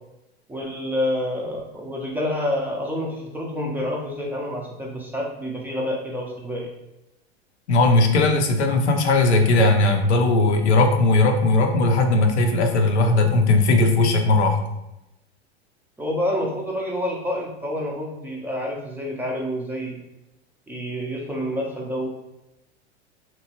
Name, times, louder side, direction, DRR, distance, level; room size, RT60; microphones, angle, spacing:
voice 1, 0.5-6.7 16.0-20.0 20.7-22.1, left 1 dB, 5° right, -2 dB, 0.4 m, -28 dB
voice 2, 7.7-14.6, left 2 dB, 80° left, 4 dB, 0.6 m, -18 dB
2.9 x 2.1 x 2.8 m, 0.91 s
hypercardioid pair, 95°, 33 cm